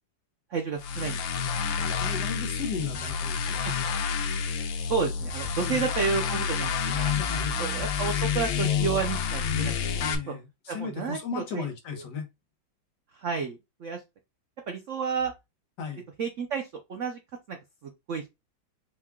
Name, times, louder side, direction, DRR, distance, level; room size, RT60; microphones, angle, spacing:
voice 1, 0.5-1.4 3.4-3.7 4.0-4.3 4.9-7.1 7.6-10.3 10.7-11.7 13.1-14.0 14.7-15.3 16.2-17.2 17.5-18.3, right 5 dB, 85° right, 0.6 m, -31 dB
sound 1, 0.8-10.2, left 6 dB, 80° left, 1.5 m, -29 dB
voice 2, 1.7-3.6 5.6-5.9 7.1-7.6 10.0-12.3 15.8-16.0, left 5 dB, 60° left, 1.6 m, -35 dB
4.7 x 2.3 x 3.5 m
omnidirectional pair, 2.2 m